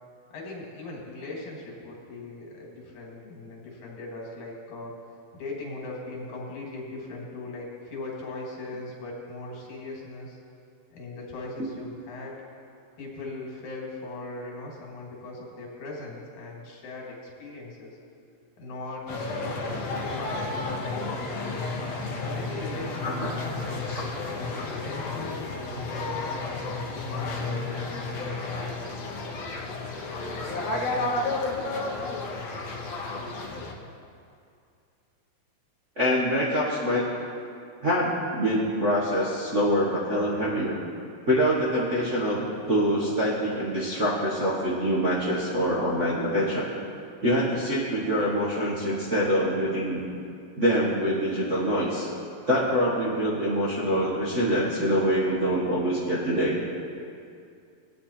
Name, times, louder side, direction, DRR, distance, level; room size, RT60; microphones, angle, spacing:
voice 1, 0.3-4.9 5.3-10.4 10.9-12.3 13.0-18.0 18.6-21.4 22.1-26.6 27.0-28.1, left 2 dB, 80° left, -2 dB, 3.4 m, -39 dB
sound 1, 19.1-33.7, left 3 dB, 65° left, 2.0 m, -32 dB
voice 2, 36.0-37.1 37.8-40.8 41.3-46.7 47.2-50.0 50.6-52.1 52.5-56.6, equal, 45° right, -7 dB, 1.0 m, -25 dB
17.5 x 9.2 x 4.3 m, 2.5 s
omnidirectional pair, 3.4 m